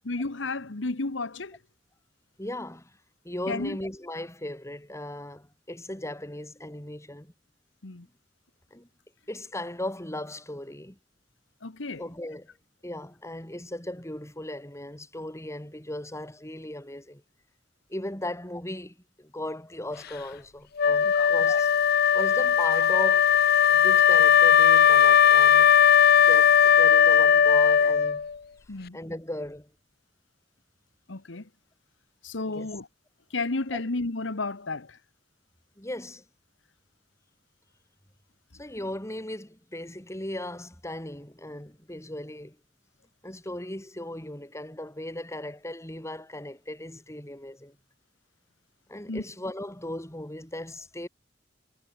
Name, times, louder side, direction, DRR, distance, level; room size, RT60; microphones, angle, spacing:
voice 1, 0.0-1.6 3.5-3.8 7.8-8.0 11.6-12.0 21.1-21.3 28.7-29.0 31.1-31.4 32.2-32.9 33.3-35.0 49.1-49.2, left 3 dB, 80° left, 1.4 m, -32 dB
voice 2, 2.4-2.9 3.2-7.3 8.7-8.9 9.3-11.0 11.9-12.5 12.8-17.2 17.9-21.7 22.1-23.3 23.7-25.7 26.2-28.3 28.9-29.7 32.4-32.8 33.7-33.8 35.8-36.2 38.5-42.6 43.2-47.8 48.9-51.1, left 1 dB, 15° left, 6.3 m, -37 dB
Wind instrument woodwind instrument, 20.8-28.3, left 8 dB, 55° left, 0.6 m, -18 dB
head